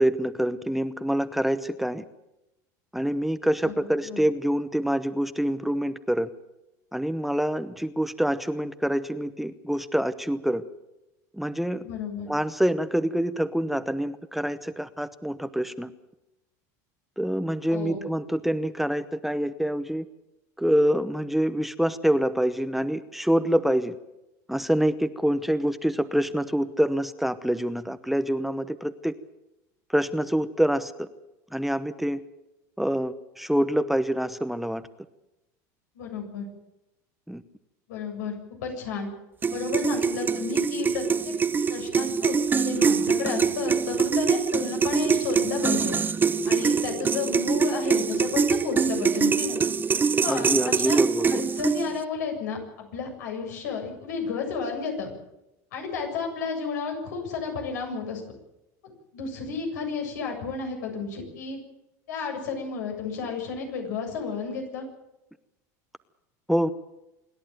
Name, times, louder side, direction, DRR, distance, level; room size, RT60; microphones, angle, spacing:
voice 1, 0.0-2.0 2.9-6.3 6.9-10.6 11.3-11.9 12.3-15.9 17.2-20.0 20.6-23.9 24.5-29.1 29.9-31.1 31.5-32.2 32.8-34.8 37.3-37.4 50.2-51.4 66.5-66.7, equal, ahead, 11 dB, 1.0 m, -26 dB
voice 2, 11.8-12.3 17.7-18.1 35.9-36.5 37.9-38.3 38.6-39.1 39.5-41.3 41.7-46.0 46.4-49.6 50.2-51.0 51.3-55.1 55.7-58.2 59.1-61.6 62.1-64.9, left 5 dB, 90° left, 2 dB, 7.6 m, -32 dB
sound 1, 39.4-52.0, right 5 dB, 20° right, 0.8 m, -24 dB
27.0 x 11.0 x 9.3 m, 0.93 s
supercardioid pair, 110°, 9 cm